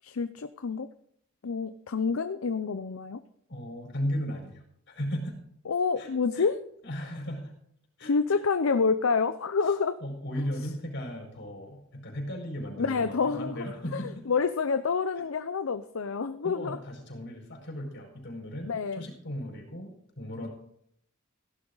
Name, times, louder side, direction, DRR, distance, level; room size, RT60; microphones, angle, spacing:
voice 1, 0.0-0.9 1.4-3.2 5.7-6.6 8.0-10.0 12.8-13.5 13.9-16.8 18.6-19.1, left 5 dB, 75° left, 11 dB, 0.6 m, -28 dB
voice 2, 3.5-5.4 6.0-6.1 6.3-6.5 6.8-7.5 8.0-8.4 10.0-14.2 16.4-20.5, equal, 60° left, 1 dB, 5.1 m, -36 dB
16.0 x 11.5 x 4.0 m, 0.70 s
head